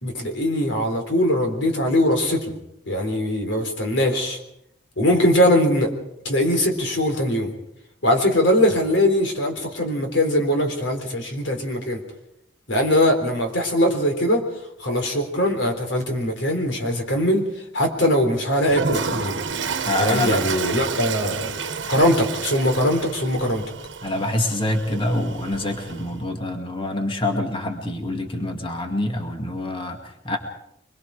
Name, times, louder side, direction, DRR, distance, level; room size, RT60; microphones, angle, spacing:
voice 1, 0.0-2.5 2.9-4.4 5.0-5.9 6.3-7.5 8.0-12.0 12.7-14.5 14.8-17.5 17.7-19.4 20.0-21.6 21.9-23.6, left 1 dB, 85° left, 4 dB, 3.9 m, -21 dB
Toilet flush, 18.6-26.2, right 5 dB, 75° right, 1.2 m, -30 dB
voice 2, 19.8-20.4 24.0-30.4, left 1 dB, 30° left, 3 dB, 2.2 m, -26 dB
24.5 x 22.0 x 4.9 m, 0.77 s
head